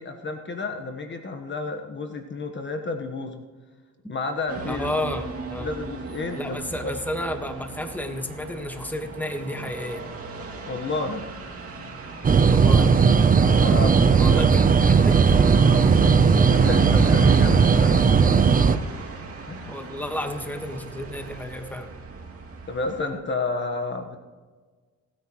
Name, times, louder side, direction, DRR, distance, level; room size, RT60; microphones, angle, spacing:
voice 1, 0.0-3.4 4.1-4.9 5.6-6.9 10.6-11.2 13.4-14.4 15.8-16.1 16.5-18.4 19.5-19.7 22.7-24.2, left 3 dB, 40° left, 5 dB, 1.4 m, -31 dB
sound 1, 4.5-23.1, right 3 dB, 50° right, 2.6 m, -38 dB
voice 2, 4.7-5.8 6.4-10.0 12.5-12.9 14.2-15.4 19.7-21.9, left 1 dB, 5° left, 5 dB, 1.6 m, -31 dB
sound 2, 12.2-18.8, right 5 dB, 30° right, 0.7 m, -17 dB
26.5 x 9.7 x 3.2 m, 1.4 s
cardioid pair, 90°, 30 cm